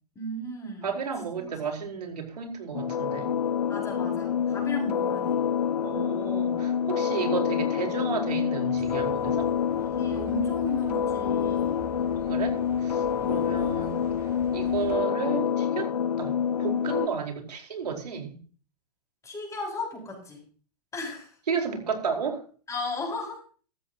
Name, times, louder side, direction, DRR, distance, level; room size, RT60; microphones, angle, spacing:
voice 1, 0.1-0.9 1.4-1.5 3.7-5.4 9.7-11.8 13.2-13.5 19.2-20.4 20.9-21.3 22.7-23.4, left 2 dB, 15° left, -1 dB, 6.3 m, -36 dB
voice 2, 0.8-3.3 5.8-9.5 12.1-14.0 14.5-16.3 16.6-18.4 21.5-22.4, right 6 dB, 80° right, 2 dB, 4.8 m, -32 dB
sound 1, 2.7-17.1, left 8 dB, 80° left, 0.9 m, -27 dB
Bus, 8.7-15.0, right 3 dB, 15° right, 5.6 m, -46 dB
14.5 x 14.5 x 3.0 m, 0.40 s
hypercardioid pair, 120°, 20 cm